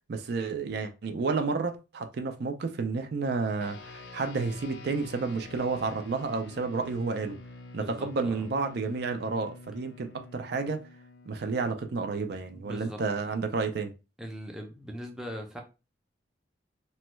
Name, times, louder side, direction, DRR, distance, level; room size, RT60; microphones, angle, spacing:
voice 1, 0.1-7.4 7.7-10.8 11.3-13.9, right 4 dB, 60° right, 0.4 m, -31 dB
sound 1, 3.6-13.2, left 2 dB, 70° left, 0.5 m, -48 dB
voice 2, 7.8-8.5 12.5-13.0 14.2-15.6, equal, 5° right, 0.5 m, -40 dB
3.0 x 2.2 x 3.0 m
head